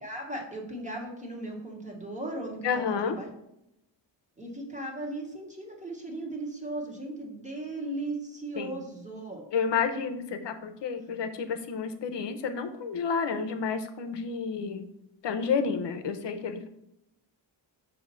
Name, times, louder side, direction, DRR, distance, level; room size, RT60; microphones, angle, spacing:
voice 1, 0.0-3.3 4.4-9.4, right 2 dB, 15° right, 0 dB, 1.1 m, -37 dB
voice 2, 2.6-3.2 8.6-8.7 9.5-14.9 15.2-16.7, left 6 dB, 65° left, 8 dB, 0.7 m, -30 dB
6.3 x 2.8 x 5.4 m, 0.82 s
wide cardioid pair, 160°, 45 cm